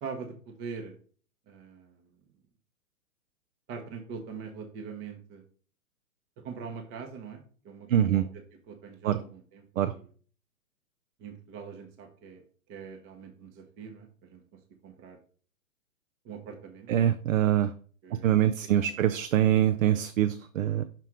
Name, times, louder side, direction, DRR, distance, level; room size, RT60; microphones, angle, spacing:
voice 1, 0.0-0.9 1.5-2.1 3.7-5.4 6.4-8.3 8.7-10.1 11.2-12.4 12.7-15.2 16.2-17.1 18.0-18.9, right 5 dB, 25° right, 4 dB, 0.8 m, -43 dB
voice 2, 7.9-8.2 9.0-9.2 9.8-9.9 16.9-17.7 18.1-20.8, right 11 dB, 70° right, 11 dB, 0.6 m, -24 dB
6.0 x 3.3 x 4.7 m, 0.44 s
hypercardioid pair, 120°, 42 cm